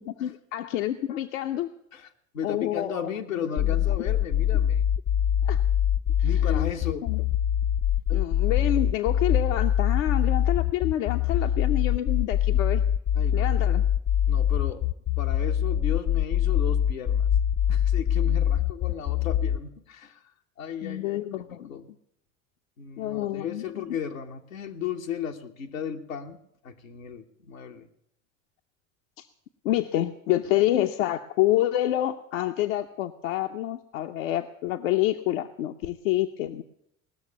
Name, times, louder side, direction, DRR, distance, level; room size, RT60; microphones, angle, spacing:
voice 1, 0.0-1.7 2.4-3.1 3.6-3.8 5.4-5.6 6.2-6.7 7.0-7.2 8.1-12.8 13.3-13.8 20.8-21.8 23.0-23.9 29.2-29.3 29.6-36.6, left 13 dB, 70° left, 6 dB, 0.8 m, -28 dB
voice 2, 2.3-4.9 6.2-7.1 8.1-8.3 13.1-13.6 14.3-17.3 17.7-20.2 20.6-21.9 22.8-26.4 26.6-27.9, left 7 dB, 90° left, 2 dB, 1.1 m, -35 dB
sound 1, 3.6-19.6, left 10 dB, 30° left, 0.5 m, -23 dB
19.0 x 6.6 x 8.3 m, 0.74 s
hypercardioid pair, 70°, 40 cm